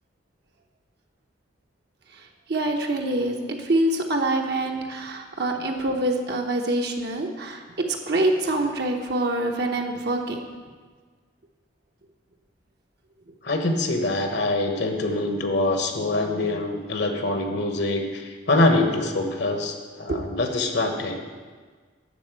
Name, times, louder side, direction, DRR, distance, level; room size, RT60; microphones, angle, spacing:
voice 1, 2.5-3.4 3.6-7.6 8.1-10.4 20.1-20.2, right 1 dB, 55° right, 2 dB, 0.9 m, -25 dB
voice 2, 13.4-21.3, left 2 dB, 60° left, 4 dB, 1.2 m, -24 dB
12.0 x 4.2 x 8.1 m, 1.5 s
head